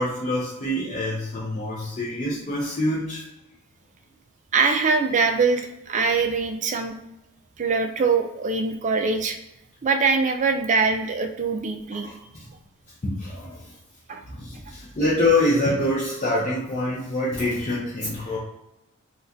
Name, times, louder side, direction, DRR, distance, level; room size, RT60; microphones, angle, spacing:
voice 1, 0.0-3.2 12.0-12.5 13.0-13.7 14.2-18.4, left 1 dB, 35° left, -7 dB, 0.6 m, -25 dB
voice 2, 4.5-7.0 7.6-9.4 9.8-12.1 14.1-14.2, right 4 dB, 35° right, 6 dB, 0.3 m, -23 dB
4.0 x 2.3 x 2.6 m, 0.88 s
head